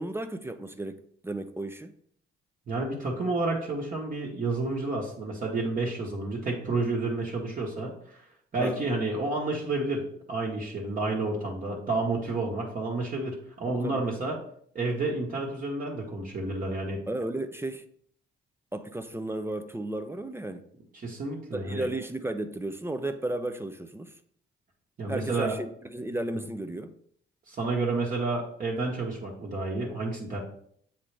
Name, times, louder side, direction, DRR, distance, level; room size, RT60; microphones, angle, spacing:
voice 1, 0.0-1.9 8.6-8.8 13.7-14.0 17.1-17.8 18.7-20.7 21.5-24.2 25.1-26.9, right 1 dB, 10° right, 0.5 m, -34 dB
voice 2, 2.7-8.2 8.5-14.4 14.7-17.0 20.9-21.9 25.0-25.5 27.5-30.4, right 2 dB, 40° right, 1.3 m, -30 dB
7.3 x 3.9 x 3.3 m
cardioid pair, 90°, 20 cm